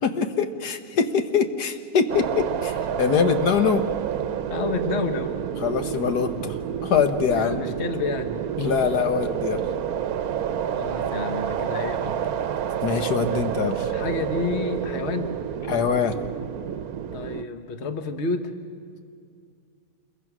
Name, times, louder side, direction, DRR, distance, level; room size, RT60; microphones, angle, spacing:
voice 1, 0.0-3.9 5.6-6.5 6.8-7.6 8.6-9.7 12.8-13.9 15.7-16.1, left 6 dB, 80° left, 8 dB, 1.6 m, -23 dB
sound 1, 2.1-17.4, right 9 dB, 70° right, 1.1 m, -29 dB
voice 2, 4.5-5.3 7.3-8.4 10.7-12.3 13.3-13.4 13.8-15.3 17.1-18.5, left 4 dB, 45° left, 8 dB, 1.4 m, -30 dB
27.5 x 22.0 x 6.1 m, 2.3 s
omnidirectional pair, 1.7 m